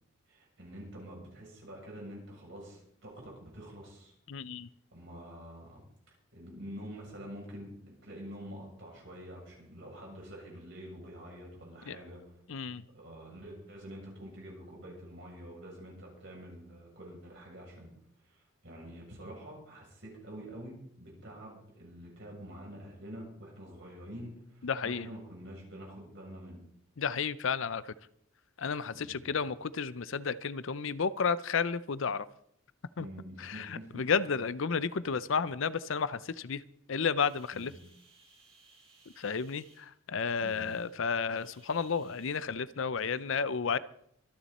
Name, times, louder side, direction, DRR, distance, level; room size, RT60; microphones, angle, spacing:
voice 1, 0.3-4.1 4.9-5.8 6.3-7.8 8.0-12.2 12.9-17.9 18.3-18.4 18.6-26.6 28.8-29.3 33.0-34.0 37.5-37.7 40.4-40.7, equal, 55° right, -2 dB, 7.4 m, -47 dB
voice 2, 4.3-4.7 11.9-12.0 12.5-12.8 24.6-25.1 27.0-27.9 28.6-32.3 33.0-33.1 33.4-36.6 36.9-37.7 39.2-43.8, left 5 dB, 60° left, 17 dB, 0.5 m, -32 dB
sound 1, 37.2-42.4, right 2 dB, 25° right, 5.9 m, -62 dB
24.5 x 10.5 x 4.2 m, 0.68 s
head